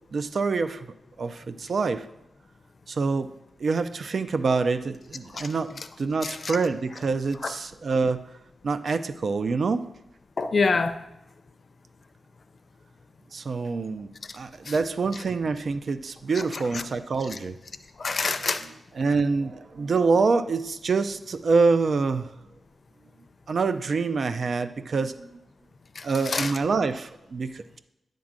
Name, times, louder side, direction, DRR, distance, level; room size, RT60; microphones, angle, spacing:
voice 1, 0.1-0.8 1.2-2.0 2.9-3.3 3.6-8.2 8.6-9.8 13.3-17.6 19.0-22.3 23.5-25.4 26.0-27.8, right 4 dB, 50° right, 12 dB, 0.4 m, -26 dB
voice 2, 6.2-6.6 7.4-7.5 10.4-10.9 14.7-14.8 18.0-18.7 26.0-26.5, left 4 dB, 40° left, 8 dB, 0.6 m, -26 dB
10.5 x 3.7 x 7.3 m, 0.87 s
wide cardioid pair, 165°, 0 cm